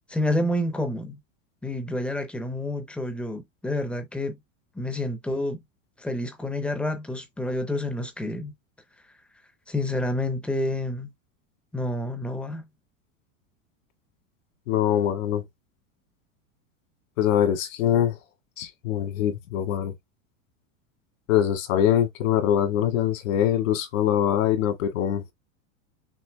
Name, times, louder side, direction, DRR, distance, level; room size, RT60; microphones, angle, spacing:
voice 1, 0.1-1.2 1.6-4.4 4.7-5.6 6.0-8.5 9.7-11.1 11.7-12.7, left 1 dB, 5° left, 0.5 m, -29 dB
voice 2, 14.7-15.4 17.2-18.2 18.6-19.9 21.3-25.2, left 10 dB, 75° left, 1.8 m, -23 dB
6.0 x 2.6 x 3.3 m
supercardioid pair, 160°, 39 cm